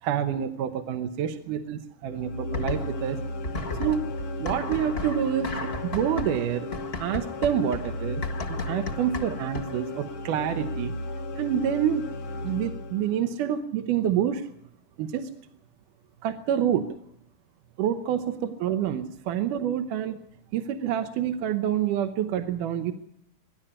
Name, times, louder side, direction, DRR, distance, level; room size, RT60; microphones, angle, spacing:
voice 1, 0.0-3.2 3.8-4.1 4.4-5.5 5.9-6.7 7.0-8.2 8.5-10.9 11.4-12.1 12.4-14.4 15.0-15.3 16.2-17.0 17.8-20.2 20.5-22.9, right 9 dB, 80° right, 7 dB, 2.5 m, -27 dB
sound 1, 2.0-13.4, left 1 dB, 55° left, 1.5 m, -35 dB
sound 2, 2.5-3.1 3.4-9.9, left 3 dB, 35° left, 1.0 m, -35 dB
25.0 x 11.5 x 10.0 m, 0.79 s
omnidirectional pair, 3.7 m